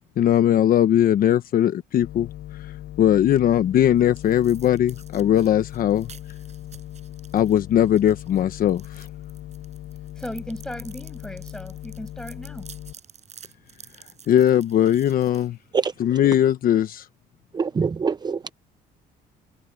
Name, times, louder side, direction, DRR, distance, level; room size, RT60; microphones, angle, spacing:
voice 1, 0.2-2.3 3.0-6.1 7.3-9.1 14.3-15.6 16.0-17.1, left 11 dB, 55° left, 1.1 m, -19 dB
sound 1, 2.0-12.9, left 13 dB, 70° left, 7.6 m, -39 dB
sound 2, 3.4-16.1, right 7 dB, 40° right, 7.0 m, -50 dB
voice 2, 10.2-12.7, left 1 dB, 5° left, 7.6 m, -36 dB
voice 3, 15.7-16.2 17.5-18.5, right 5 dB, 25° right, 0.7 m, -25 dB
cardioid pair, 110°, 17 cm